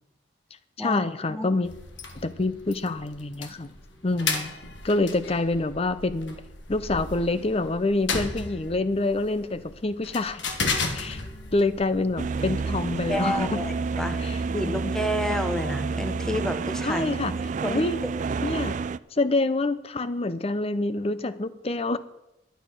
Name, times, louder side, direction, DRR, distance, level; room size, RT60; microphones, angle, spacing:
voice 1, 0.8-1.7 2.1-3.7 4.0-4.5 4.8-6.4 6.7-10.4 10.9-11.2 11.5-13.6 14.2-14.4 16.8-17.3 17.6-18.0 18.4-18.8 19.1-22.0, left 2 dB, 35° left, 14 dB, 0.7 m, -26 dB
sound 1, 1.6-14.1, left 4 dB, 80° left, 1.5 m, -35 dB
sound 2, 12.2-19.0, right 4 dB, 40° right, 0.3 m, -29 dB
voice 2, 13.1-14.2 14.5-17.1 17.6-18.1, left 1 dB, 5° left, 6 dB, 1.0 m, -30 dB
11.5 x 9.2 x 6.1 m, 0.87 s
head